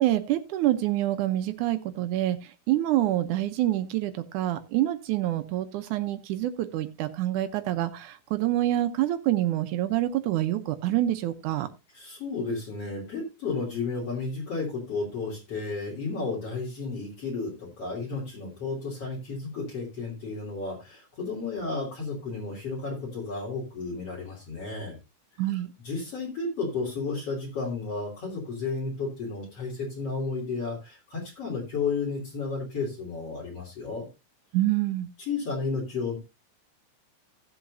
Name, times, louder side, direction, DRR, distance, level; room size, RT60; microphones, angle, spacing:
voice 1, 0.0-11.7 25.4-25.7 34.5-35.1, right 14 dB, 85° right, 9 dB, 2.3 m, -26 dB
voice 2, 11.9-25.0 25.8-34.1 35.2-36.2, left 4 dB, 50° left, -4 dB, 4.2 m, -32 dB
17.0 x 7.9 x 2.7 m, 0.24 s
omnidirectional pair, 3.5 m